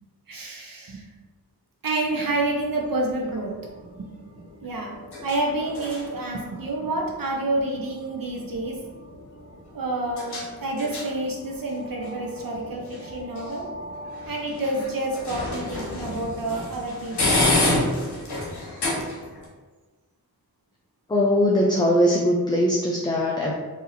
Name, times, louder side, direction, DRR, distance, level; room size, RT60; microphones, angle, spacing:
voice 1, 0.3-1.0 1.8-4.9 5.2-8.8 9.7-13.7 14.3-17.3, right 2 dB, 60° right, -1 dB, 0.7 m, -29 dB
sound 1, 2.0-19.5, left 2 dB, 85° left, 0.9 m, -31 dB
voice 2, 21.1-23.5, equal, 10° left, -3 dB, 0.5 m, -21 dB
4.1 x 2.7 x 2.7 m, 1.3 s
cardioid pair, 55°, 39 cm